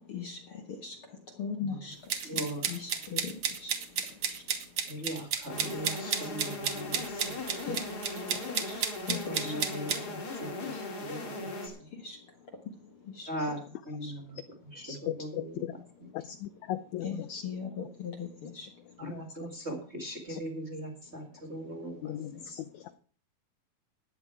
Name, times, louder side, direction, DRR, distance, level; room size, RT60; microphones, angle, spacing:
voice 1, 0.1-0.4 0.8-1.0 1.4-1.9 2.7-3.3 3.6-3.7 4.3-4.4 7.7-7.8 8.7-8.8 9.1-9.5 12.0-12.2 13.2-13.3 14.0-14.1 17.0-18.7, left 6 dB, 55° left, 4 dB, 1.7 m, -38 dB
sound 1, 2.1-10.0, right 7 dB, 55° right, 2.0 m, -32 dB
voice 2, 2.2-2.8 4.8-7.4 9.2-11.9 13.3-14.4 14.6-16.1 19.0-22.5, equal, 25° right, 3 dB, 1.7 m, -40 dB
sound 2, 5.5-11.7, left 2 dB, 30° left, 2.4 m, -39 dB
voice 3, 15.3-15.7 16.1-17.4 19.0-19.1 20.3-20.4 22.0-23.0, left 12 dB, 80° left, 13 dB, 1.7 m, -38 dB
13.5 x 9.9 x 4.7 m, 0.43 s
omnidirectional pair, 4.0 m